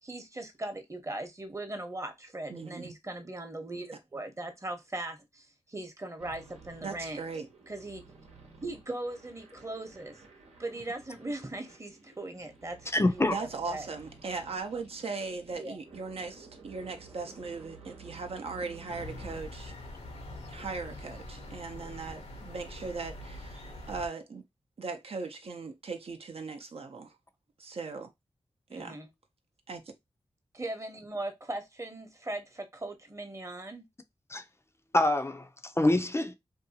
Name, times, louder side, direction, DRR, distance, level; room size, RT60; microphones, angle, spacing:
voice 1, 0.0-7.2 7.7-8.0 8.6-10.2 10.6-13.3 13.7-13.9 15.6-15.8 28.7-29.1 30.5-33.9, right 2 dB, 30° right, 0.8 m, -39 dB
voice 2, 2.5-2.9 6.8-7.5 13.3-19.7 20.5-24.4 24.8-27.1 27.6-28.1 28.7-29.0 29.7-29.9, right 4 dB, 65° right, 0.5 m, -38 dB
sound 1, 6.2-19.4, right 4 dB, 85° right, 0.9 m, -53 dB
voice 3, 12.9-13.4 34.3-34.4 34.9-36.3, left 2 dB, 25° left, 0.4 m, -26 dB
sound 2, 18.9-24.1, left 1 dB, 85° left, 0.8 m, -44 dB
2.7 x 2.3 x 2.7 m
cardioid pair, 45°, 11 cm